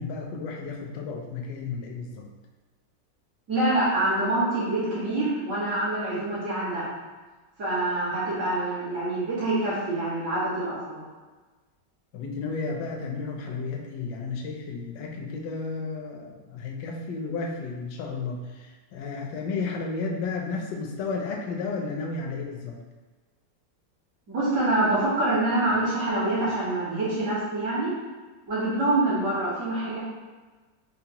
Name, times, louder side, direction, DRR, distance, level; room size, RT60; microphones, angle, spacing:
voice 1, 0.0-2.3 12.1-22.8, left 4 dB, 75° left, 1 dB, 1.1 m, -33 dB
voice 2, 3.5-6.9 7.6-11.0 24.3-27.9 28.5-30.0, right 2 dB, 65° right, -10 dB, 2.2 m, -26 dB
4.6 x 2.0 x 2.8 m, 1.3 s
omnidirectional pair, 1.9 m